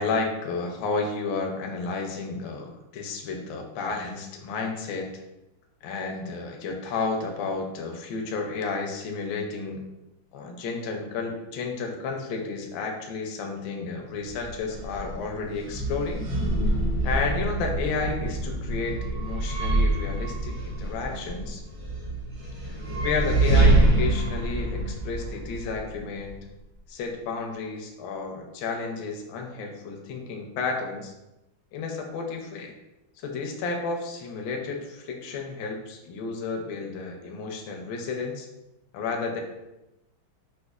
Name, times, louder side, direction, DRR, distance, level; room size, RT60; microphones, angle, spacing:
voice 1, 0.0-5.1 5.8-9.8 10.3-16.3 17.0-21.6 22.7-26.3 26.9-31.1 31.7-32.7 33.2-38.5 38.9-39.4, left 4 dB, 75° left, 2 dB, 1.2 m, -32 dB
sound 1, 14.2-26.4, right 2 dB, 50° right, 0.7 m, -26 dB
5.1 x 2.1 x 2.3 m, 0.95 s
omnidirectional pair, 2.3 m